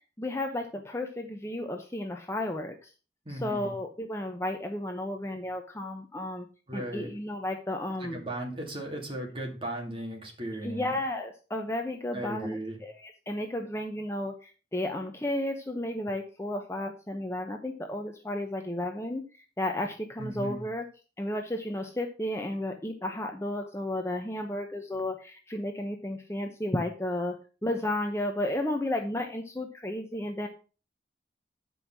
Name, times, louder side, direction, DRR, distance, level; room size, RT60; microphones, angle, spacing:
voice 1, 0.2-2.9 3.3-6.5 6.7-8.2 10.6-19.2 19.6-20.8 21.2-27.3 27.6-30.5, left 1 dB, 15° left, 4 dB, 0.8 m, -33 dB
voice 2, 3.3-3.7 6.7-7.1 8.0-10.9 12.1-12.8 20.2-20.6, right 1 dB, 30° right, 0 dB, 2.6 m, -36 dB
9.1 x 5.5 x 5.9 m, 0.35 s
head